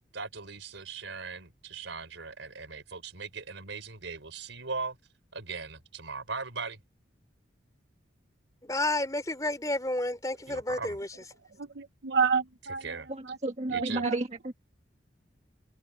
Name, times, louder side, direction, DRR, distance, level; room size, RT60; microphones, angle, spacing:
voice 1, 0.1-5.0 5.3-6.8 10.5-11.0 12.8-13.1 13.7-14.0, right 4 dB, 85° right, 4.1 m, -39 dB
voice 2, 8.6-11.1, left 1 dB, 20° left, 3.0 m, -30 dB
voice 3, 11.8-12.8 13.7-14.2, right 5 dB, 65° right, 0.8 m, -28 dB
voice 4, 13.1-14.5, right 2 dB, 35° right, 1.5 m, -33 dB
head